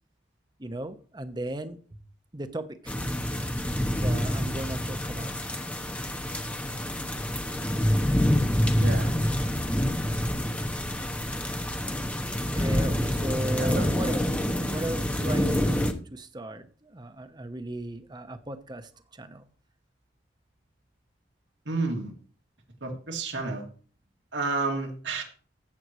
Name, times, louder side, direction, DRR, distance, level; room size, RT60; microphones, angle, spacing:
voice 1, 0.6-1.8 2.3-2.9 3.9-5.4 12.5-14.4 14.7-19.5, right 1 dB, 25° right, 10 dB, 0.9 m, -36 dB
sound 1, 2.9-15.9, equal, 5° left, 0.9 m, -27 dB
voice 2, 8.8-9.1 13.6-13.9 21.7-22.1 22.8-23.6 24.3-25.2, right 3 dB, 85° right, 2 dB, 2.4 m, -30 dB
14.5 x 7.8 x 3.1 m, 0.40 s
head